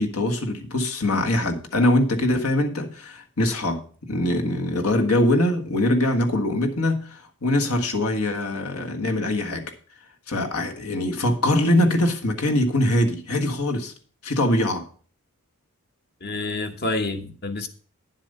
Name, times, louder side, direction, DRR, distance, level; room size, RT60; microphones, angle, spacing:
voice 1, 0.0-3.8 4.1-9.6 10.3-13.9 14.2-14.8, left 1 dB, 75° left, 1.6 m, -23 dB
voice 2, 16.2-17.7, left 2 dB, 45° left, 1.2 m, -28 dB
10.0 x 7.4 x 5.4 m
head